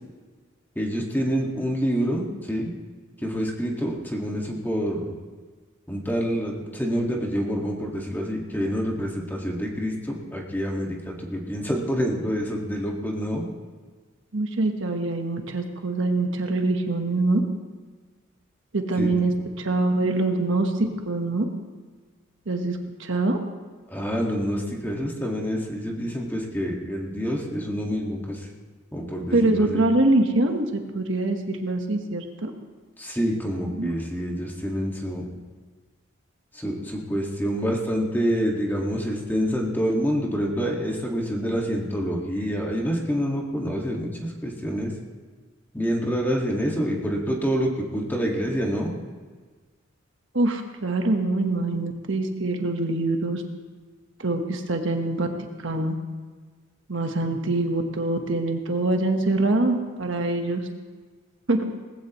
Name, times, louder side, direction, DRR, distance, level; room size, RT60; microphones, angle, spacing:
voice 1, 0.8-2.7 3.2-5.1 5.9-13.4 19.0-19.1 23.9-28.5 28.9-29.8 33.0-35.4 36.5-44.9 45.7-48.9, equal, 10° left, -1 dB, 1.9 m, -27 dB
voice 2, 14.3-17.4 18.7-19.3 19.6-20.7 21.1-21.4 22.5-23.4 29.3-30.7 30.9-32.5 33.8-33.9 50.3-53.4 54.2-55.3 55.6-56.0 56.9-60.6 61.5-61.6, right 2 dB, 65° right, 4 dB, 1.3 m, -24 dB
19.5 x 15.5 x 3.1 m, 1.4 s
head